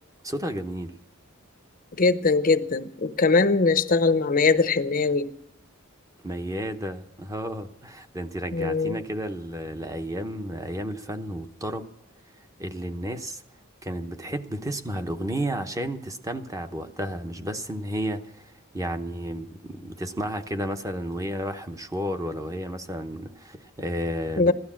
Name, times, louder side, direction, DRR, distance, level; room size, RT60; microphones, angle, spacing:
voice 1, 0.2-0.9 6.2-11.9 12.6-13.4 13.8-24.5, equal, 15° right, 7 dB, 0.9 m, -32 dB
voice 2, 2.0-5.3 8.5-9.0 24.4-24.5, left 4 dB, 40° left, 12 dB, 0.7 m, -21 dB
16.0 x 12.0 x 7.3 m, 0.80 s
head